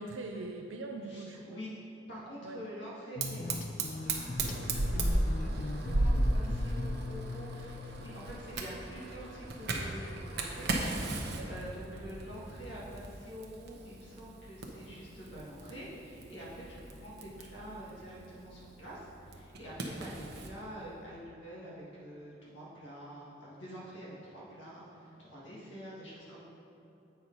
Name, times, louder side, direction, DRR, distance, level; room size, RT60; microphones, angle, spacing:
voice 1, 0.0-1.6 2.4-2.7 11.3-11.6, right 2 dB, 80° right, 2 dB, 0.4 m, -42 dB
voice 2, 1.0-1.7 2.1-10.7 11.1-26.4, equal, 70° left, -7 dB, 1.7 m, -47 dB
sound 1, 3.2-8.3, left 2 dB, 45° left, 0.4 m, -40 dB
Fire, 3.2-20.5, right 1 dB, 60° right, 0.8 m, -36 dB
8.1 x 4.5 x 5.3 m, 2.9 s
head